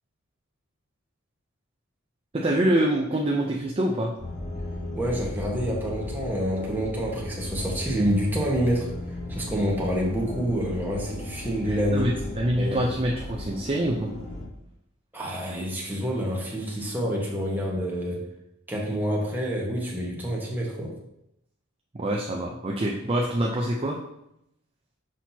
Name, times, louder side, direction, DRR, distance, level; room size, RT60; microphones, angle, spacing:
voice 1, 2.3-4.1 11.6-14.1 21.9-24.0, right 1 dB, 25° right, -1 dB, 0.5 m, -25 dB
sound 1, 4.2-14.4, left 1 dB, 30° left, 2.2 m, -36 dB
voice 2, 5.0-8.9 9.3-12.2 12.6-12.8 15.1-18.2 18.7-21.0, equal, 10° right, -3 dB, 1.3 m, -27 dB
6.3 x 5.9 x 2.8 m, 0.80 s
head